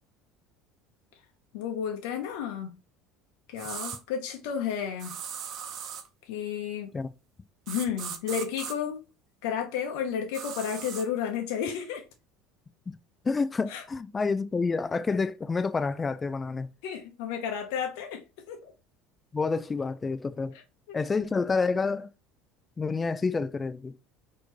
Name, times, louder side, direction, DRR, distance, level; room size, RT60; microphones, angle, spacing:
voice 1, 1.5-2.8 3.5-5.2 6.3-6.9 7.7-9.0 9.4-12.0 13.7-13.8 16.8-18.2 18.5-18.7 20.9-21.0, left 8 dB, 75° left, 0.9 m, -32 dB
sound 1, 3.6-4.0 5.0-6.1 7.7-8.7 10.3-11.1, right 8 dB, 55° right, 0.9 m, -38 dB
voice 2, 13.2-16.7 19.3-20.6 20.9-22.1 22.8-23.9, left 4 dB, 25° left, 0.5 m, -28 dB
4.4 x 3.0 x 3.0 m
supercardioid pair, 90°, 0 cm